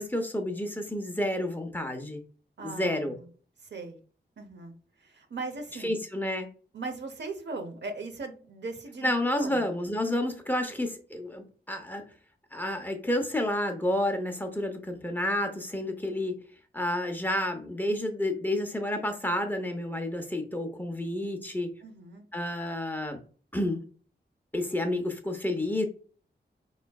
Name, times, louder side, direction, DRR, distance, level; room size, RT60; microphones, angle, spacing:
voice 1, 0.0-2.2 2.6-3.2 5.8-6.5 9.0-12.0 12.5-16.4 16.7-21.7 22.3-23.2 23.5-23.8 24.5-25.8, left 1 dB, 10° left, 4 dB, 0.7 m, -30 dB
voice 2, 2.6-3.3 3.6-4.0 4.4-6.0 6.7-9.7 21.8-22.3, right 3 dB, 70° right, 6 dB, 0.8 m, -39 dB
5.5 x 3.2 x 2.3 m, 0.40 s
wide cardioid pair, 110°, 18 cm